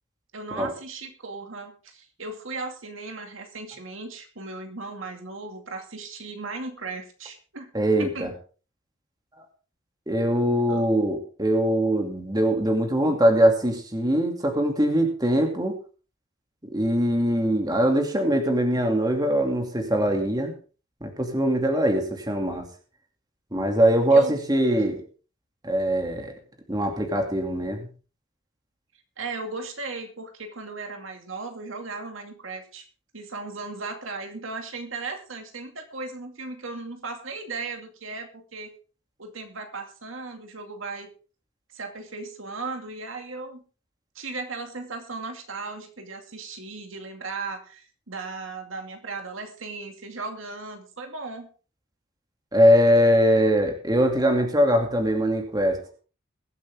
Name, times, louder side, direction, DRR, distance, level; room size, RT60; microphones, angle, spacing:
voice 1, 0.3-7.7 8.0-8.3 10.7-10.8 24.1-24.3 29.2-32.9 33.1-38.7 39.2-41.1 41.7-43.6 44.1-51.5, right 3 dB, 70° right, 4 dB, 2.4 m, -36 dB
voice 2, 7.7-8.3 10.1-15.8 16.6-20.5 21.0-22.7 23.5-25.0 25.6-26.3 26.7-27.9 52.5-55.8, equal, 20° right, 3 dB, 2.6 m, -22 dB
22.5 x 8.4 x 3.6 m, 0.37 s
head